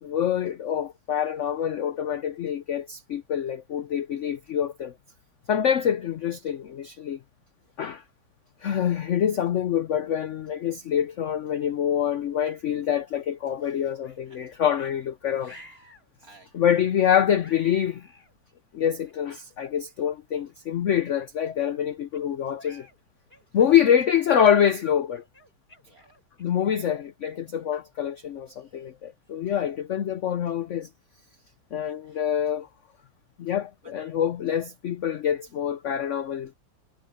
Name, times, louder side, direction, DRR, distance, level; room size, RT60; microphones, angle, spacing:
voice 1, 0.0-4.9 5.5-7.2 7.8-8.0 8.6-15.5 16.5-18.0 18.7-22.9 23.5-25.2 26.4-30.9 31.7-32.7 33.4-36.5, left 9 dB, 65° left, 0.7 m, -25 dB
sound 1, 13.1-13.3 14.0-14.2 14.8-15.0 15.5-16.1 16.7-16.9 17.4-18.3 19.0-19.1 19.9-20.1 20.5-20.6 21.2-22.2 22.6-23.0 23.3-23.6 24.1-26.7, left 1 dB, 30° left, 5.2 m, -52 dB
voice 2, 13.6-14.0 14.2-14.6 15.4-16.7 23.5-23.7 25.9-26.1 28.5-28.7 31.4-31.5 31.8-32.2 33.8-33.9 35.1-35.2, right 2 dB, 50° right, 4.4 m, -57 dB
omnidirectional pair, 2.0 m